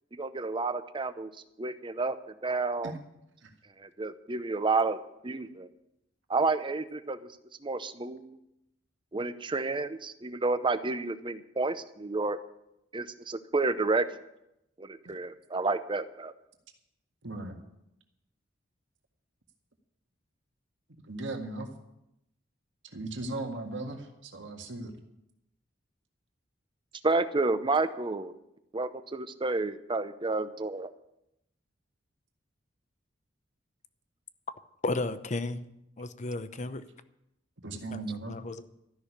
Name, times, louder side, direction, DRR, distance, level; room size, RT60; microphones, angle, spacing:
voice 1, 0.2-1.3 1.6-2.2 2.4-2.9 3.8-5.0 5.2-5.7 6.3-7.2 7.6-8.4 9.1-12.4 12.9-14.1 14.8-16.3 27.0-28.3 28.7-30.9, right 3 dB, 25° right, 0.7 m, -30 dB
voice 2, 17.2-17.6 21.0-21.7 22.9-24.9 37.6-38.4, right 2 dB, 70° right, 1.8 m, -37 dB
voice 3, 34.8-35.6 36.0-36.8 37.9-38.0 38.3-38.7, left 2 dB, 40° left, 0.7 m, -33 dB
13.0 x 6.3 x 9.9 m
head